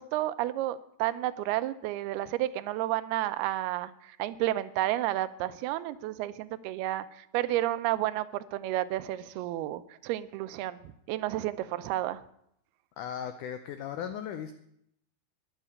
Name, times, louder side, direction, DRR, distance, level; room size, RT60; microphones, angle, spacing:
voice 1, 0.0-12.2, right 15 dB, 90° right, 14 dB, 2.7 m, -31 dB
voice 2, 13.0-14.5, left 9 dB, 80° left, 9 dB, 1.8 m, -37 dB
11.0 x 11.0 x 8.5 m, 0.74 s
omnidirectional pair, 4.4 m